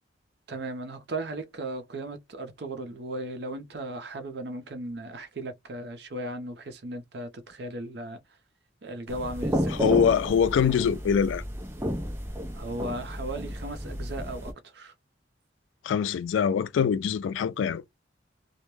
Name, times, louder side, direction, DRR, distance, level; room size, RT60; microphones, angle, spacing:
voice 1, 0.5-8.2 8.8-9.8 12.5-14.9, right 2 dB, 60° right, 0.5 m, -36 dB
sound 1, 9.1-14.5, equal, 15° right, 0.5 m, -32 dB
voice 2, 9.7-11.4 15.8-17.8, left 7 dB, 85° left, 0.3 m, -24 dB
2.2 x 2.1 x 2.9 m
head